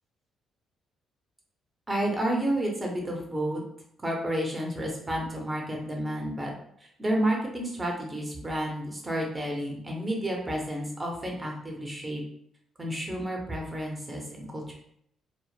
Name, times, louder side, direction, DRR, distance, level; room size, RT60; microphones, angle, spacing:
voice 1, 1.9-3.6 4.0-6.5 7.0-12.2 12.8-14.7, right 1 dB, 20° right, -1 dB, 0.6 m, -30 dB
2.1 x 2.0 x 3.0 m, 0.71 s
cardioid pair, 90°, 0 cm